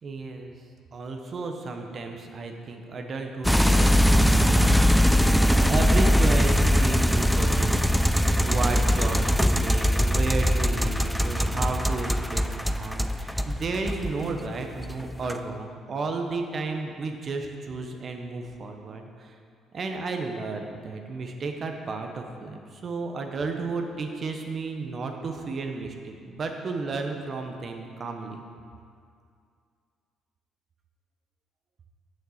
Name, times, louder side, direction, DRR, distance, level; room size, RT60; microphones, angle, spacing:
voice 1, 0.0-0.5 0.9-19.3 19.7-28.4, right 3 dB, 45° right, 4 dB, 1.0 m, -33 dB
sound 1, 3.4-14.4 14.7-15.4, equal, ahead, 0.4 m, -21 dB
6.8 x 6.5 x 6.5 m, 2.3 s
supercardioid pair, 80°, 0 cm